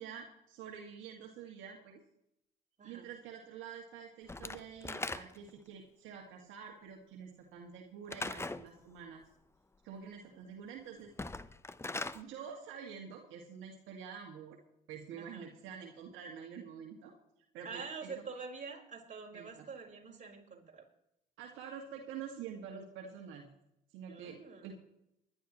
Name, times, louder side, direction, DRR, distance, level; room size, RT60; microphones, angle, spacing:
voice 1, 0.0-2.0 2.8-9.2 9.8-11.3 12.1-14.6 14.9-17.1 17.5-18.2 19.3-19.7 21.4-23.5 23.9-24.7, right 7 dB, 70° right, 1 dB, 2.1 m, -47 dB
voice 2, 2.8-3.1 10.3-10.4 15.2-15.5 17.6-20.8 24.1-24.7, right 5 dB, 35° right, 0 dB, 4.9 m, -46 dB
Slam / Wood, 4.3-5.6 8.1-8.7 11.1-12.2, left 2 dB, 10° left, 0.8 m, -40 dB
21.5 x 11.5 x 3.1 m, 0.82 s
hypercardioid pair, 65°, 21 cm